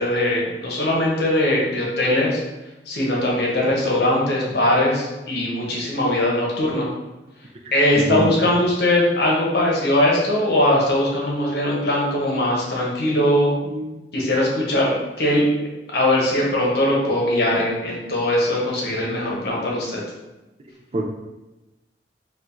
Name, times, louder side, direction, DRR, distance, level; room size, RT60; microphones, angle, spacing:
voice 1, 0.0-2.4 2.9-6.9 7.7-13.5 14.1-15.5 15.9-20.0, left 1 dB, 65° left, -3 dB, 0.9 m, -20 dB
voice 2, 8.1-8.5 13.6-14.0 20.9-21.0, right 1 dB, 35° right, 1 dB, 0.4 m, -26 dB
4.4 x 2.4 x 2.6 m, 1.0 s
head